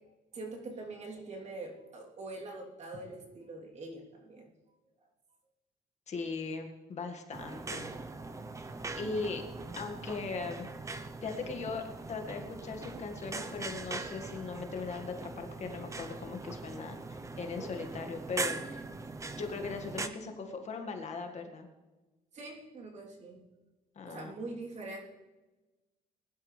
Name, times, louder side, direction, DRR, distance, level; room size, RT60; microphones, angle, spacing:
voice 1, 0.3-4.5 22.3-23.4 24.1-25.0, right 2 dB, 45° right, -1 dB, 3.3 m, -43 dB
voice 2, 6.1-7.9 9.0-9.4 9.8-10.7 11.2-18.8 19.4-21.7 24.0-24.3, left 4 dB, 45° left, 4 dB, 1.8 m, -39 dB
sound 1, 7.3-20.1, right 3 dB, 20° right, 0.7 m, -41 dB
21.0 x 11.5 x 3.3 m, 1.1 s
cardioid pair, 135°, 16 cm